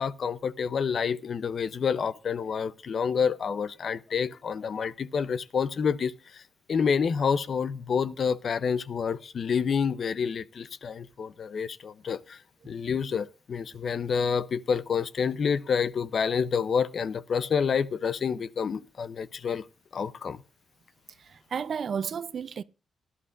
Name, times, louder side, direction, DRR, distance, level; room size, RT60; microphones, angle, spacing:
voice 1, 0.0-6.4 6.7-12.4 12.7-19.6 19.9-20.4, left 6 dB, 55° left, 0.6 m, -28 dB
voice 2, 21.3-22.6, right 7 dB, 55° right, 0.5 m, -32 dB
18.5 x 11.5 x 2.5 m
cardioid pair, 105°, 0 cm